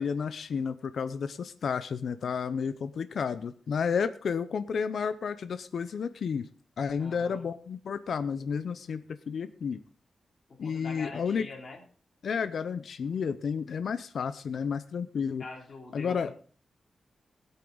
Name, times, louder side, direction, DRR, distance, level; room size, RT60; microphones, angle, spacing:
voice 1, 0.0-6.5 6.8-9.8 10.6-11.5 12.2-15.4 15.9-16.3, left 6 dB, 70° left, 12 dB, 0.7 m, -31 dB
voice 2, 7.0-7.5 10.5-11.8 15.4-16.4, left 3 dB, 45° left, 0 dB, 3.0 m, -44 dB
19.0 x 8.3 x 4.0 m, 0.41 s
wide cardioid pair, 145°, 0 cm